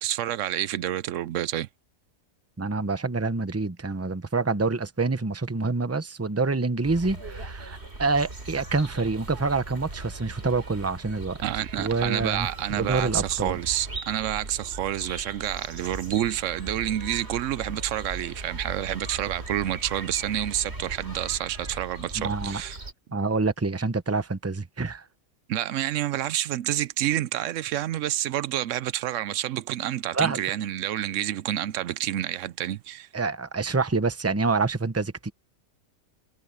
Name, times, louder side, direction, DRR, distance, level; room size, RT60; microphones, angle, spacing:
voice 1, 0.0-1.7 11.4-22.8 25.5-33.1, right 12 dB, 85° right, 1.0 m, -28 dB
voice 2, 2.6-11.4 11.8-12.5 12.8-13.6 22.2-22.6 23.1-25.0 30.1-30.4 33.1-35.3, right 3 dB, 15° right, 0.8 m, -27 dB
sound 1, 6.8-22.9, right 2 dB, 60° right, 3.5 m, -39 dB
omnidirectional pair, 1.3 m